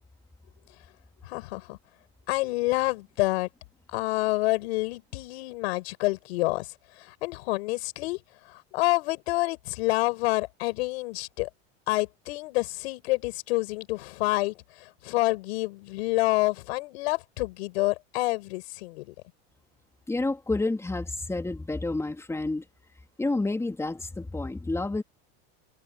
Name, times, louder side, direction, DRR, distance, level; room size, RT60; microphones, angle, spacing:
voice 1, 1.3-1.8 2.3-3.5 3.9-6.7 7.0-8.2 8.5-11.5 11.9-19.1, left 22 dB, 80° left, 5.8 m, -28 dB
voice 2, 20.1-22.6 23.2-25.0, left 2 dB, 10° left, 3.6 m, -29 dB
supercardioid pair, 130°, 32 cm